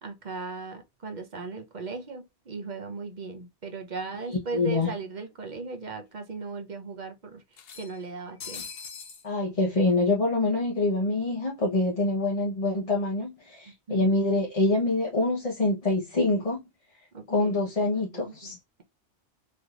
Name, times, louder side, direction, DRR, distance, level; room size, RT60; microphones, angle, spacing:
voice 1, 0.0-7.4 7.7-8.7 13.9-14.2 17.1-18.8, right 4 dB, 45° right, 0.9 m, -38 dB
sound 1, 4.1-4.2 4.5-4.6 5.7-5.8 6.1-6.2 7.5-9.3, left 6 dB, 60° left, 0.9 m, -42 dB
voice 2, 4.3-4.9 9.2-16.6 17.3-18.6, left 2 dB, 35° left, 0.9 m, -25 dB
4.5 x 3.2 x 2.4 m
omnidirectional pair, 1.1 m